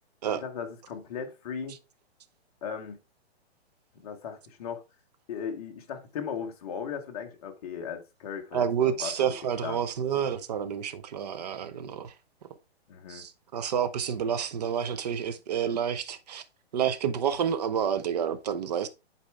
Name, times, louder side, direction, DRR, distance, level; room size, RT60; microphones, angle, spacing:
voice 1, 0.3-1.8 2.6-3.0 3.9-4.8 5.3-9.3 9.6-9.8 12.9-13.2, left 7 dB, 35° left, 1.2 m, -37 dB
voice 2, 8.5-12.1 13.1-16.4 16.7-18.9, right 8 dB, 40° right, 0.7 m, -29 dB
8.3 x 4.5 x 3.4 m
hypercardioid pair, 170°, 32 cm